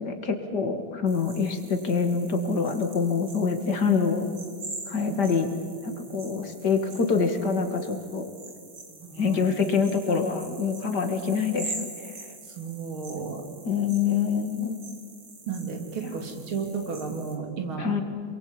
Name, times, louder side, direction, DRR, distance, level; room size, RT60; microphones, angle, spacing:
voice 1, 0.0-4.3 4.9-5.5 5.8-8.2 9.2-12.1 13.6-14.8 16.0-16.1 17.8-18.0, left 5 dB, 55° left, 6 dB, 2.7 m, -26 dB
sound 1, 1.1-17.4, right 3 dB, 65° right, 3.6 m, -44 dB
voice 2, 9.0-9.5 12.6-13.5 15.5-17.9, right 5 dB, 90° right, 4 dB, 3.7 m, -33 dB
27.5 x 22.0 x 8.9 m, 2.1 s
omnidirectional pair, 2.2 m